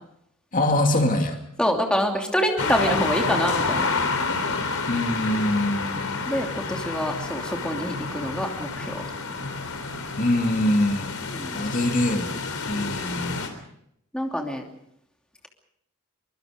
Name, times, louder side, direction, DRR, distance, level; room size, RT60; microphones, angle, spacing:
voice 1, 0.5-1.4 4.9-6.2 10.2-11.1 11.5-13.5, left 1 dB, 40° left, 3 dB, 2.6 m, -24 dB
voice 2, 1.6-3.9 6.3-9.0 11.3-11.6 12.8-13.0 14.1-14.6, equal, 5° left, 1 dB, 2.8 m, -26 dB
sound 1, 2.6-13.5, left 4 dB, 80° left, 3.7 m, -29 dB
24.0 x 24.0 x 5.2 m, 0.73 s
head